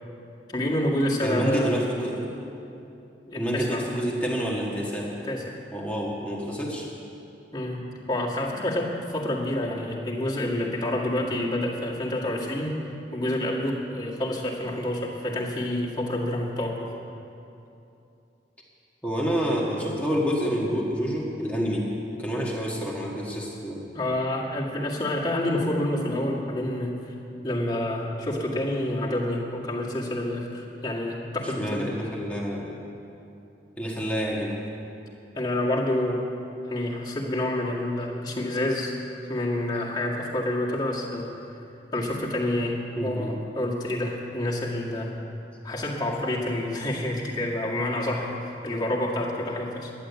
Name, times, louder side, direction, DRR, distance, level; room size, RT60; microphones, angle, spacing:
voice 1, 0.5-1.8 3.3-3.9 5.2-5.5 7.5-12.8 13.1-16.9 23.9-26.9 27.4-31.9 35.3-36.2 36.7-38.9 39.3-41.3 41.9-42.8 43.0-45.2 45.6-49.9, left 1 dB, 25° left, -4 dB, 1.9 m, -28 dB
voice 2, 1.2-2.3 3.3-5.1 5.7-6.9 19.0-21.9 22.2-23.8 31.4-32.8 33.8-34.6 43.0-43.3, equal, 10° left, -3 dB, 1.6 m, -28 dB
11.5 x 10.0 x 8.2 m, 2.8 s
head